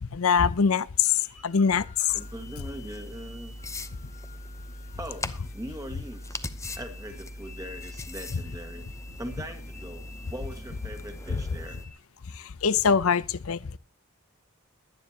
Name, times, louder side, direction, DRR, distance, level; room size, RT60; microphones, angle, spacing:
voice 1, 0.0-2.1 11.3-11.4 12.3-13.8, left 6 dB, 70° left, 0.6 m, -24 dB
sound 1, 1.1-11.9, left 5 dB, 35° left, 1.9 m, -53 dB
sound 2, 2.1-11.9, left 2 dB, 15° left, 0.8 m, -40 dB
voice 2, 2.1-3.6 4.9-6.4 6.7-8.9 9.2-11.8, right 1 dB, 15° right, 1.8 m, -41 dB
22.0 x 9.5 x 2.9 m
head